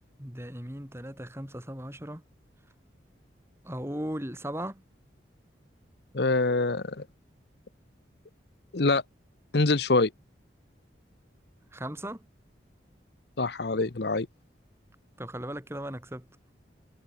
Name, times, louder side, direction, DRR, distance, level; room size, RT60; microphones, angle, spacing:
voice 1, 0.2-2.2 3.6-4.8 11.7-12.3 15.2-16.3, right 1 dB, 15° right, 5.7 m, -37 dB
voice 2, 6.1-7.0 8.7-9.0 9.5-10.1 13.4-14.3, left 3 dB, 60° left, 0.9 m, -25 dB
head